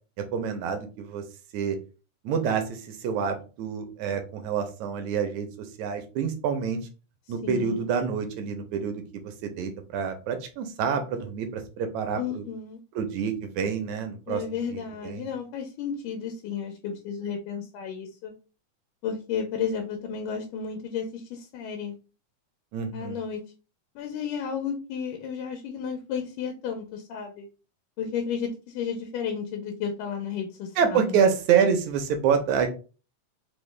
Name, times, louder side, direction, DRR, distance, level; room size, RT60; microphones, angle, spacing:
voice 1, 0.2-1.2 1.5-1.8 2.2-6.8 7.3-12.4 13.0-14.4 14.7-15.3 22.7-23.2 30.8-32.7, right 7 dB, 75° right, 7 dB, 1.8 m, -27 dB
voice 2, 7.4-7.8 12.2-12.8 14.3-18.3 19.0-21.9 22.9-23.4 24.0-27.5 28.0-31.2, left 7 dB, 85° left, 3 dB, 2.1 m, -33 dB
5.0 x 2.1 x 3.1 m, 0.34 s
omnidirectional pair, 3.6 m